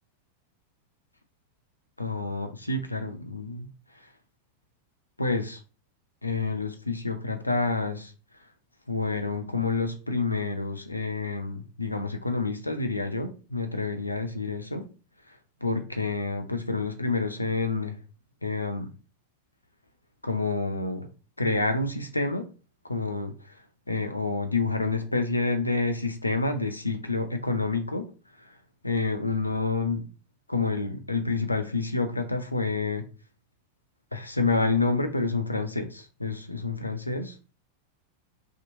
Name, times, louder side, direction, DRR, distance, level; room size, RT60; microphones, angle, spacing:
voice 1, 2.0-3.7 5.2-5.6 6.2-8.1 8.9-14.9 15.3-18.0 18.4-18.9 20.2-21.1 21.4-22.5 22.9-23.6 23.9-28.1 28.4-28.5 28.8-30.1 30.5-33.1 34.1-37.4, left 3 dB, 85° left, 0.4 m, -28 dB
2.8 x 2.4 x 2.6 m
figure-of-eight pair, 90°, 0 cm